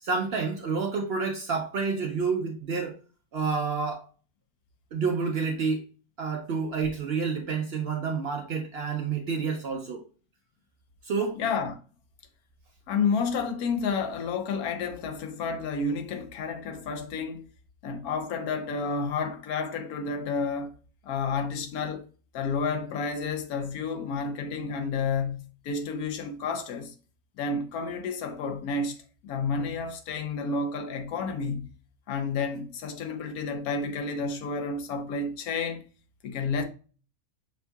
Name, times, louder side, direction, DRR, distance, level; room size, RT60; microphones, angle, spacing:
voice 1, 0.0-2.9 3.3-4.0 4.9-5.8 6.2-10.0 11.0-11.4, right 5 dB, 65° right, 0.6 m, -29 dB
voice 2, 11.4-11.8 12.9-17.5 17.8-20.7 21.0-22.1 22.3-26.9 27.4-29.0 29.2-31.7 32.1-35.8 36.2-36.6, left 4 dB, 85° left, 1.2 m, -30 dB
6.1 x 2.7 x 2.2 m
omnidirectional pair, 1.5 m